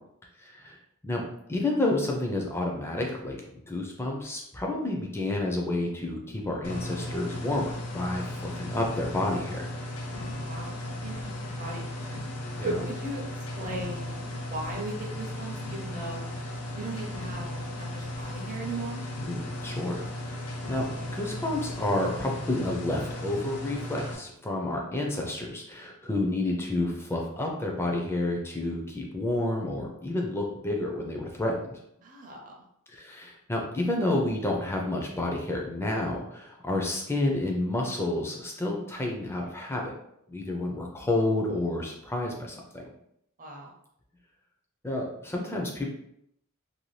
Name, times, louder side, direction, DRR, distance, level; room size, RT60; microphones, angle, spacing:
voice 1, 0.4-1.2 1.5-3.4 3.7-9.7 12.5-12.8 19.2-31.8 32.9-39.9 40.3-42.8 44.8-45.9, left 2 dB, 10° left, 0 dB, 0.4 m, -30 dB
sound 1, 6.6-24.2, left 1 dB, 80° left, 0.6 m, -36 dB
voice 2, 10.5-11.3 11.6-12.2 12.6-13.2 13.6-16.2 16.7-19.0 32.0-32.5 43.4-43.7, right 2 dB, 35° right, -1 dB, 0.5 m, -37 dB
2.6 x 2.2 x 3.1 m, 0.75 s
head